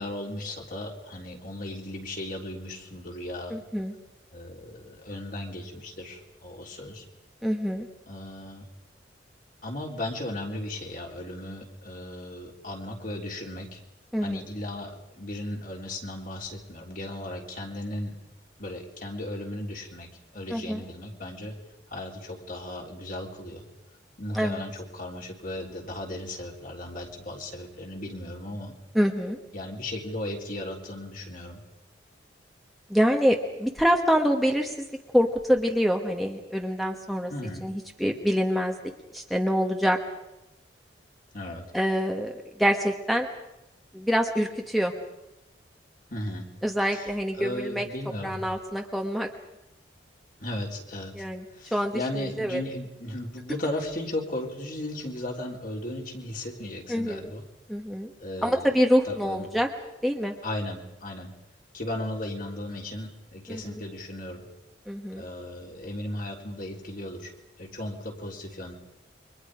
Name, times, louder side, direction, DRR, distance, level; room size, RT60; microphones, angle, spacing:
voice 1, 0.0-3.6 4.3-7.0 8.1-8.7 9.6-13.8 14.2-18.1 18.6-21.5 21.9-23.6 24.2-28.7 29.5-31.6 37.3-37.7 41.3-41.7 46.1-46.5 46.9-48.5 50.4-51.1 51.5-57.4 58.2-58.7 59.0-59.5 60.4-61.3 61.7-64.5 65.1-67.3 67.6-68.7, left 1 dB, 45° left, 0 dB, 3.7 m, -36 dB
voice 2, 3.5-3.9 7.4-7.9 14.1-14.4 20.5-20.8 24.3-24.6 28.9-29.4 32.9-34.8 35.1-37.3 37.6-38.7 39.1-40.0 41.7-42.3 42.6-43.3 43.9-44.9 46.6-47.8 48.2-49.3 51.1-51.4 51.7-52.0 52.4-52.6 56.9-57.3 57.7-58.1 58.4-59.7 60.0-60.3 63.5-63.8 64.9-65.2, equal, ahead, 2 dB, 1.3 m, -25 dB
29.5 x 24.0 x 5.0 m, 0.92 s
head